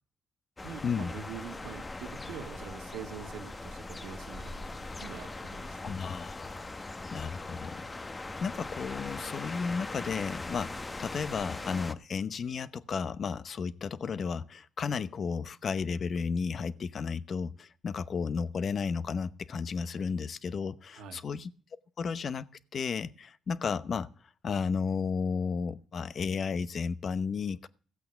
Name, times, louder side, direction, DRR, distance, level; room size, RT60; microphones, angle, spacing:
sound 1, 0.6-11.9, left 2 dB, 25° left, 1.0 m, -40 dB
voice 1, 0.6-6.0 20.9-21.2, right 7 dB, 90° right, 1.5 m, -44 dB
voice 2, 5.8-7.9 8.2-21.5 22.0-24.1 24.4-27.7, left 5 dB, 50° left, 0.8 m, -33 dB
15.5 x 8.4 x 6.9 m
cardioid pair, 90°, 0 cm